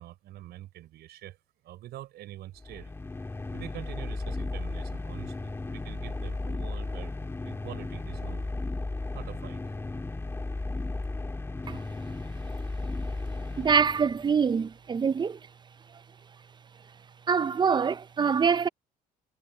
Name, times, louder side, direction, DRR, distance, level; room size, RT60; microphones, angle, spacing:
voice 1, 0.0-1.4 1.6-2.9 3.5-7.1 7.4-8.5 9.1-9.7, right 14 dB, 75° right, 6.2 m, -45 dB
sound 1, 2.6-14.4, left 2 dB, 15° left, 1.6 m, -35 dB
voice 2, 13.6-15.4 17.3-18.7, right 6 dB, 25° right, 0.5 m, -25 dB
cardioid pair, 110°, 17 cm